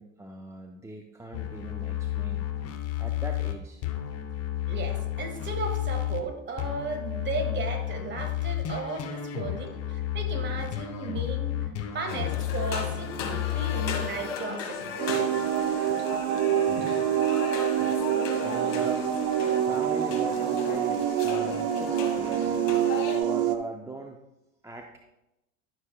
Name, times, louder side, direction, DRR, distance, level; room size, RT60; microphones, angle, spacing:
voice 1, 0.0-2.5 3.0-3.8 9.3-9.5 13.5-13.6 14.9-15.0 16.7-17.0 18.4-19.3 19.6-22.6 23.1-24.2 24.6-25.0, right 2 dB, 5° right, 3 dB, 0.5 m, -40 dB
sound 1, 1.3-6.3 6.6-14.1, left 12 dB, 35° left, 0.9 m, -31 dB
voice 2, 4.7-11.5 11.9-14.8 22.2-22.3, right 4 dB, 25° right, 4 dB, 1.7 m, -35 dB
sound 2, 12.1-23.2, left 6 dB, 65° left, 1.7 m, -36 dB
sound 3, 15.0-23.6, right 10 dB, 50° right, 0.8 m, -26 dB
11.5 x 6.3 x 2.3 m, 0.90 s
hypercardioid pair, 80°, 41 cm